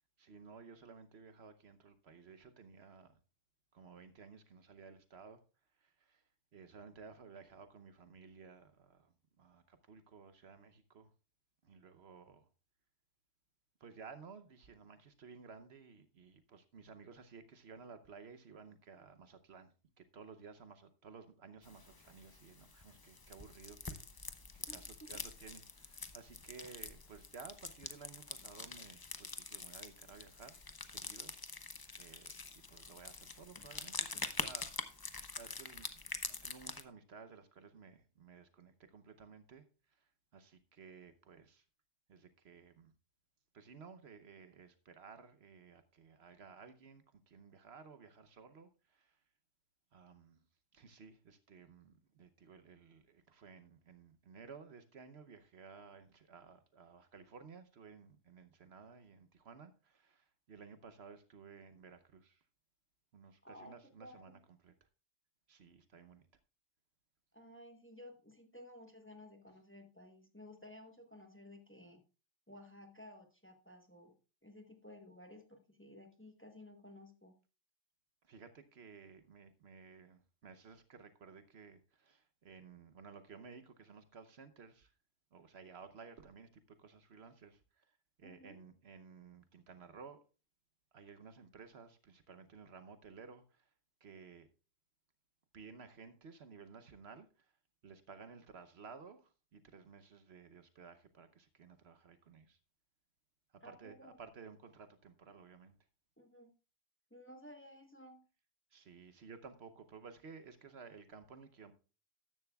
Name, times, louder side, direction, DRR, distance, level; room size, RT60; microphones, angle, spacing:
voice 1, 0.2-3.2 3.7-5.4 5.8-6.2 6.5-11.1 11.6-12.5 13.8-24.0 24.5-30.6 30.8-31.3 32.0-34.7 35.4-36.0 36.3-41.6 42.1-42.9 43.5-49.2 49.9-50.4 50.7-62.4 63.1-64.7 65.5-66.2 78.2-84.9 85.3-90.2 90.9-93.7 94.0-94.5 95.5-97.5 97.8-102.6 103.6-105.8 108.7-111.7, right 5 dB, 60° right, 1.1 m, -56 dB
sound 1, 21.6-36.8, left 4 dB, 25° left, 0.5 m, -45 dB
voice 2, 24.7-25.2 63.4-63.7 64.0-64.2 67.3-72.0 72.5-74.2 74.4-77.4 88.2-88.6 103.6-104.2 106.2-106.5 107.1-108.2, left 1 dB, 10° left, 1.1 m, -55 dB
14.0 x 10.5 x 2.3 m
omnidirectional pair, 1.2 m